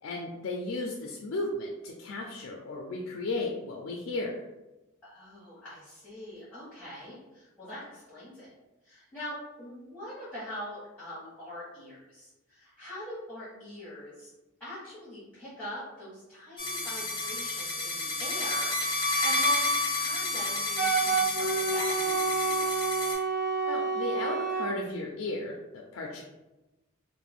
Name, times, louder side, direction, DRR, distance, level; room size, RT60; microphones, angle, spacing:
voice 1, 0.0-4.4 23.7-26.2, left 2 dB, 65° left, -1 dB, 0.4 m, -35 dB
voice 2, 5.0-8.5 8.8-14.3 14.6-22.8, left 1 dB, 5° left, -12 dB, 1.0 m, -43 dB
sound 1, 16.6-23.1, left 2 dB, 20° left, 0.7 m, -30 dB
Wind instrument woodwind instrument, 20.8-24.7, right 4 dB, 60° right, 1.0 m, -28 dB
2.4 x 2.0 x 3.4 m, 1.0 s
head